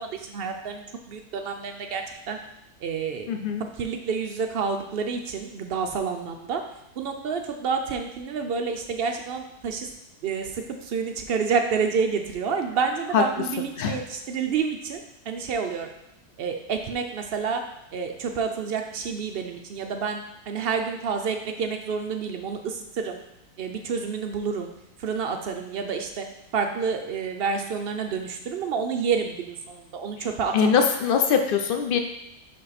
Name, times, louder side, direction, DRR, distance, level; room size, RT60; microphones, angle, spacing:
voice 1, 0.0-2.0 2.3-2.4 2.8-3.3 3.8-6.6 7.0-9.9 10.2-15.0 15.3-15.9 16.4-17.6 17.9-20.2 20.5-23.2 23.6-24.7 25.0-26.2 26.5-30.8, right 5 dB, 75° right, 4 dB, 0.5 m, -29 dB
voice 2, 3.3-3.6 13.1-13.2 13.8-14.0 30.2-30.3 30.5-32.0, left 6 dB, 75° left, 5 dB, 0.5 m, -22 dB
5.5 x 5.4 x 4.1 m, 0.85 s
omnidirectional pair, 1.7 m